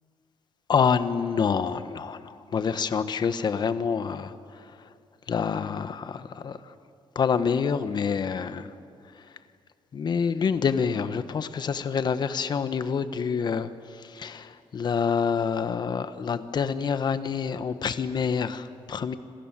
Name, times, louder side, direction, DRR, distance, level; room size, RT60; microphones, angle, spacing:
voice 1, 0.7-4.9 5.3-6.7 7.1-8.7 9.1-9.3 9.9-19.2, left 6 dB, 50° left, 1.3 m, -27 dB
27.0 x 27.0 x 7.5 m
cardioid pair, 120°, 10 cm